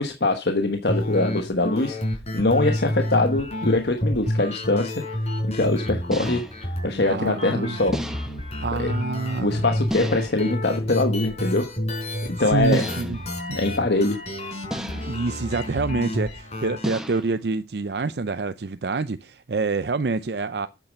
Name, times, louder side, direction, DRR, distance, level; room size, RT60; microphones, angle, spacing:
voice 1, 0.0-2.0 2.3-4.9 5.5-6.4 6.8-8.0 8.8-8.9 9.4-11.6 12.4-12.9 13.5-14.2, left 2 dB, 65° left, 1.2 m, -23 dB
sound 1, 0.9-16.9, left 1 dB, 40° left, 4.5 m, -29 dB
sound 2, 4.2-4.4 6.1-6.7 7.9-8.5 9.9-10.5 12.7-13.3 14.7-15.3 16.8-17.4, equal, 5° right, 1.2 m, -32 dB
voice 2, 7.0-7.8 8.6-9.6 12.4-13.2 14.9-20.7, right 3 dB, 65° right, 0.6 m, -27 dB
8.8 x 8.4 x 5.2 m
head